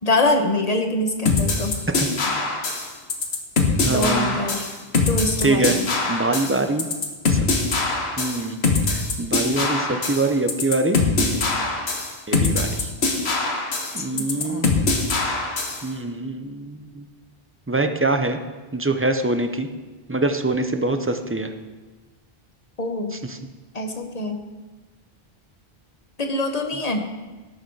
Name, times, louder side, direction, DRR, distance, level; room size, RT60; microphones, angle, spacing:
voice 1, 0.0-1.7 3.8-4.6 5.1-5.8 14.0-14.7 22.8-23.1 23.7-24.4 26.2-27.0, left 2 dB, 40° left, 5 dB, 1.1 m, -24 dB
sound 1, 1.3-15.8, left 3 dB, 85° left, 1.5 m, -23 dB
voice 2, 3.8-4.4 5.4-5.8 6.1-6.9 7.3-7.4 8.2-8.6 8.9-11.4 12.3-12.9 13.9-14.7 15.8-17.0 17.7-18.4 18.7-19.7 20.1-21.5 23.1-23.4, right 2 dB, 15° right, 7 dB, 0.6 m, -24 dB
17.0 x 6.7 x 4.7 m, 1.2 s
omnidirectional pair, 1.1 m